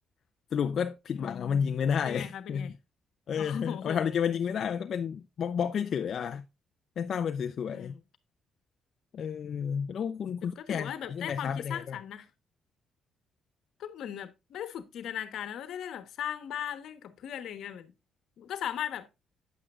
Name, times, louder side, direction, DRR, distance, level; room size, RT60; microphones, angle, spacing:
voice 1, 0.5-2.7 3.3-6.4 7.0-7.9 9.1-12.0, left 7 dB, 60° left, 0.5 m, -31 dB
voice 2, 1.1-1.8 2.0-2.7 3.4-4.4 7.7-8.0 10.4-12.3 13.8-17.9 18.4-19.1, left 9 dB, 75° left, 1.2 m, -38 dB
9.1 x 8.6 x 2.4 m
cardioid pair, 90°, 0 cm